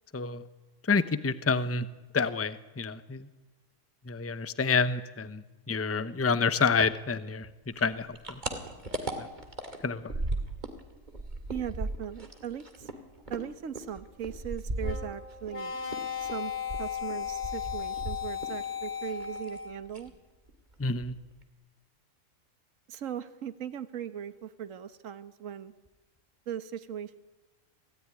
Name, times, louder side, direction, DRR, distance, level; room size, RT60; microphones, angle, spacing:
voice 1, 0.8-1.9 2.1-3.3 4.1-8.4 9.2-9.3 9.8-10.1 20.8-21.1, left 4 dB, 15° left, 13 dB, 0.7 m, -28 dB
sound 1, 7.7-10.8 11.1-15.6 15.9-18.6 18.9-19.6 19.9-20.2 20.5-20.6 20.9-21.4, right 2 dB, 35° right, 2.6 m, -37 dB
voice 2, 11.5-12.9 13.3-16.5 16.8-20.1 22.9-25.7 26.5-27.2, right 9 dB, 70° right, 11 dB, 1.5 m, -39 dB
sound 2, 14.8-19.9, left 8 dB, 35° left, 1.9 m, -36 dB
27.0 x 17.5 x 9.8 m, 1.2 s
omnidirectional pair, 1.4 m